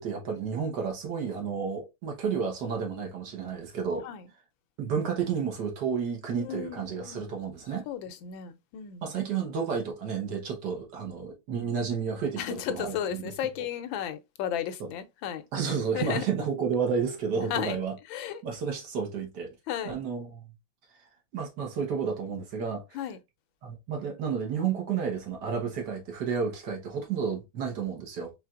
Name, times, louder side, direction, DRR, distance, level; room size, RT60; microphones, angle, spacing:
voice 1, 0.0-4.1 4.8-7.9 9.0-13.2 15.5-17.9 18.4-19.6 19.9-20.5 21.3-22.8 23.6-28.3, right 6 dB, 60° right, 1.6 m, -31 dB
voice 2, 6.4-7.3 7.9-9.0 12.4-15.4 15.9-16.2 17.5-17.8 18.1-18.4 19.7-20.0 22.9-23.2, left 9 dB, 85° left, 1.4 m, -34 dB
4.4 x 3.3 x 2.4 m
omnidirectional pair, 2.1 m